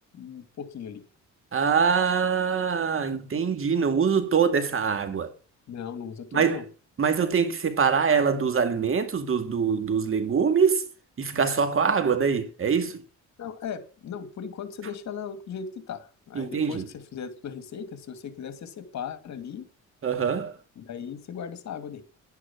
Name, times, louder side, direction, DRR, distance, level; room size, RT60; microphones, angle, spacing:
voice 1, 0.1-1.0 5.7-6.6 13.4-19.7 20.8-22.0, left 7 dB, 65° left, 2.2 m, -37 dB
voice 2, 1.5-5.3 6.3-6.6 7.0-10.9 11.2-13.0 16.3-16.9 20.0-20.6, right 6 dB, 45° right, 2.3 m, -24 dB
11.0 x 9.8 x 5.9 m
cardioid pair, 90°, 30 cm